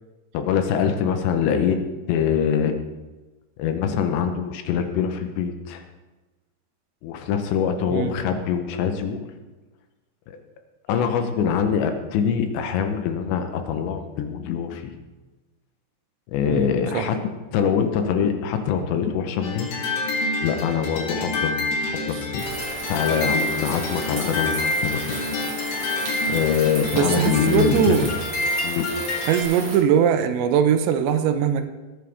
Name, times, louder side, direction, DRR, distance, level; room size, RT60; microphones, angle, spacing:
voice 1, 0.3-1.8 2.1-2.8 3.6-5.8 7.0-9.3 10.3-10.4 10.9-15.0 16.3-19.7 20.4-22.5 22.9-25.2 26.3-28.1 28.6-28.9, left 7 dB, 80° left, 7 dB, 3.2 m, -24 dB
sound 1, 19.4-29.4, left 2 dB, 60° left, 3.2 m, -27 dB
sound 2, 22.4-29.8, right 3 dB, 45° right, 2.2 m, -35 dB
voice 2, 26.9-28.1 29.2-31.7, right 8 dB, 80° right, 8 dB, 2.9 m, -21 dB
19.5 x 9.2 x 3.5 m, 1.2 s
omnidirectional pair, 5.2 m